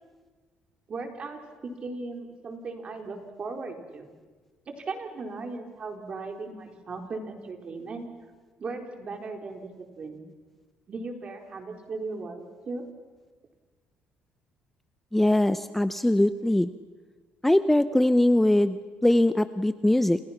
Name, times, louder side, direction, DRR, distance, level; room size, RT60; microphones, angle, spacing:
voice 1, 0.9-4.1 4.7-8.1 8.6-9.7 10.0-10.2 10.9-12.8, right 3 dB, 40° right, 3 dB, 4.3 m, -37 dB
voice 2, 15.1-16.7 17.4-20.2, left 1 dB, 5° left, 11 dB, 0.7 m, -22 dB
30.0 x 28.5 x 6.0 m, 1.4 s
cardioid pair, 120°, 3 cm